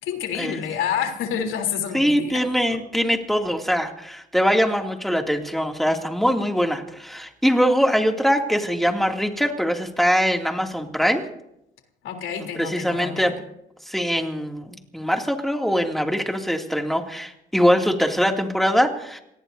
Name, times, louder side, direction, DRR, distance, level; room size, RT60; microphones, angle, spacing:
voice 1, 0.0-2.8 12.0-13.3, left 8 dB, 90° left, 4 dB, 3.5 m, -28 dB
voice 2, 1.9-11.2 12.6-13.3 13.9-19.2, equal, ahead, 2 dB, 2.6 m, -22 dB
28.0 x 18.5 x 2.7 m, 0.79 s
cardioid pair, 90°, 20 cm